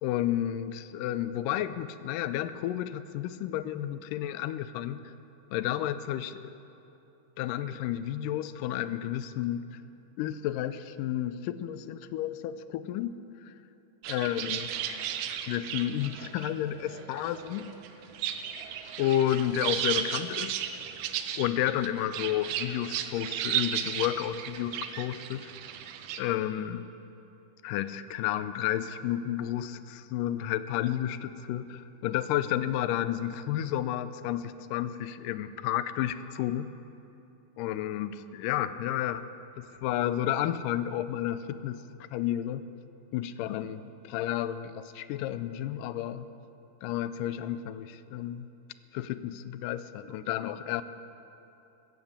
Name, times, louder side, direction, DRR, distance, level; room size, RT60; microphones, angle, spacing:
voice 1, 0.0-5.1 5.5-6.5 7.4-9.6 10.2-13.1 13.4-13.5 14.1-14.7 15.5-17.7 19.0-20.6 21.4-25.5 26.2-26.9 27.6-36.7 37.6-39.2 39.6-41.8 42.1-42.7 43.1-46.3 46.8-48.5 48.9-50.8, left 12 dB, 90° left, 13 dB, 2.2 m, -31 dB
sound 1, 14.0-26.2, right 9 dB, 85° right, 2.4 m, -35 dB
15.5 x 12.5 x 7.3 m, 2.8 s
omnidirectional pair, 3.7 m